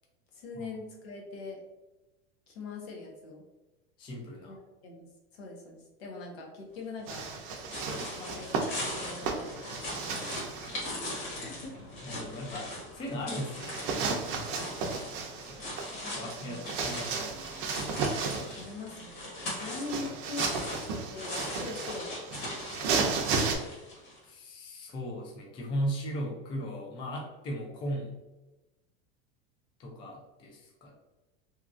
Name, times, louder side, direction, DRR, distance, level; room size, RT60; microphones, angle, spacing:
voice 1, 0.3-1.6 2.5-3.4 4.4-4.6 4.8-5.1 5.3-7.2 7.9-9.9 10.7-11.7 15.9-16.6 18.6-20.5 21.1-22.2 22.8-23.5, left 3 dB, 85° left, 0 dB, 0.9 m, -42 dB
voice 2, 4.0-4.6 10.5-10.8 12.0-13.8 15.5-15.8 16.1-17.7 24.2-28.1 29.8-30.9, equal, 15° left, 0 dB, 0.3 m, -37 dB
sound 1, 7.0-24.2, left 1 dB, 55° left, 1.4 m, -40 dB
sound 2, 7.1-10.8 13.6-18.6 19.6-23.6, right 4 dB, 55° right, 0.6 m, -34 dB
2.9 x 2.4 x 2.4 m, 1.0 s
supercardioid pair, 150°, 30 cm